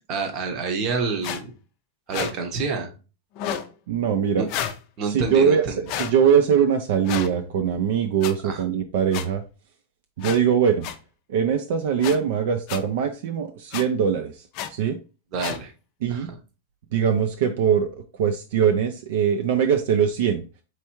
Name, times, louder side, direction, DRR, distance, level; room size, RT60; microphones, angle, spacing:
voice 1, 0.1-1.5 2.1-2.9 4.4-4.5 5.0-5.8 8.4-8.6 15.3-15.7 16.1-16.3, right 4 dB, 35° right, 4 dB, 0.8 m, -28 dB
sound 1, 1.2-1.4 2.1-2.3 3.3-3.7 4.5-4.8 5.9-6.1 7.0-7.3 8.2-8.3 9.1-9.2 10.2-10.4 10.8-10.9 12.0-12.2 12.7-12.8 13.7-13.8 14.5-14.7 15.4-15.6, left 9 dB, 40° left, 0.5 m, -30 dB
voice 2, 3.9-4.5 5.0-9.4 10.2-10.9 11.3-15.0 16.0-16.3 16.9-17.9 18.2-20.4, right 7 dB, 60° right, 7 dB, 0.4 m, -22 dB
4.4 x 3.3 x 3.0 m, 0.33 s
supercardioid pair, 160°, 0 cm